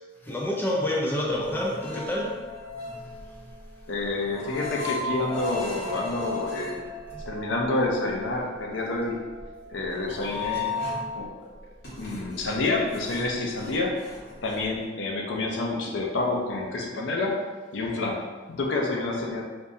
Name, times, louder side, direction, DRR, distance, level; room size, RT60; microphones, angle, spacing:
voice 1, 0.2-2.3 3.0-3.1, left 1 dB, 10° left, -3 dB, 0.4 m, -27 dB
sound 1, 1.4-11.2 11.6-14.8, left 2 dB, 60° left, 1.3 m, -36 dB
voice 2, 3.9-6.8 7.3-9.2 9.7-10.8 11.1-11.3 12.0-14.0 14.4-17.5 17.7-18.2 18.5-19.4, left 2 dB, 80° left, 0 dB, 0.5 m, -28 dB
3.5 x 2.6 x 2.6 m, 1.4 s
head